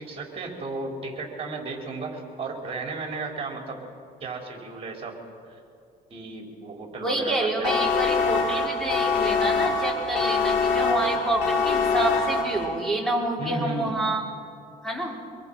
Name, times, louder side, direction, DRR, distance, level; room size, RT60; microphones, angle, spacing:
voice 1, 0.0-3.8 4.2-5.2 5.5-5.6 6.1-7.8 13.4-14.1, right 3 dB, 35° right, 1 dB, 4.9 m, -34 dB
voice 2, 7.0-14.2 14.8-15.2, right 1 dB, 5° left, -2 dB, 4.9 m, -28 dB
sound 1, 7.6-12.9, left 4 dB, 85° left, 3.5 m, -24 dB
25.5 x 22.0 x 5.9 m, 2.3 s
cardioid pair, 110°, 17 cm